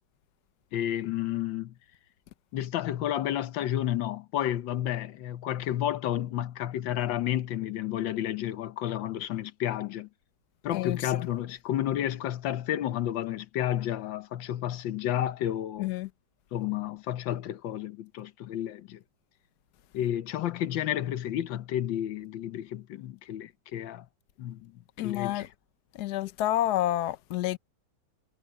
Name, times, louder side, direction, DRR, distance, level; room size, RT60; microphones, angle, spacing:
voice 1, 0.7-1.7 2.5-10.1 10.6-15.9 16.5-19.0 19.9-24.1 24.4-24.7 25.0-25.5, left 12 dB, 80° left, 1.5 m, -31 dB
voice 2, 10.7-11.3 15.8-16.1 25.0-25.5 25.9-27.6, left 13 dB, 65° left, 1.3 m, -29 dB
omnidirectional pair, 2.0 m